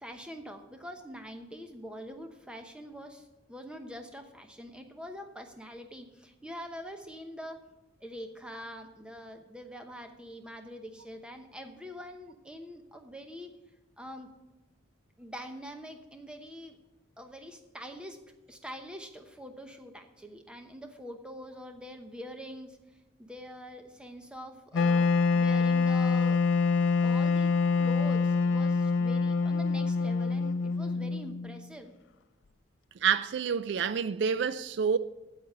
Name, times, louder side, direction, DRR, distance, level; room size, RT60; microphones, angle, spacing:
voice 1, 0.0-7.6 8.0-13.6 14.0-14.3 15.2-16.8 17.2-18.2 18.5-22.8 23.2-26.4 27.0-31.9, equal, 5° right, 0.9 m, -44 dB
Wind instrument woodwind instrument, 24.7-31.7, left 4 dB, 70° left, 0.4 m, -26 dB
voice 2, 33.0-35.0, right 7 dB, 60° right, 0.3 m, -28 dB
8.5 x 8.2 x 7.3 m
head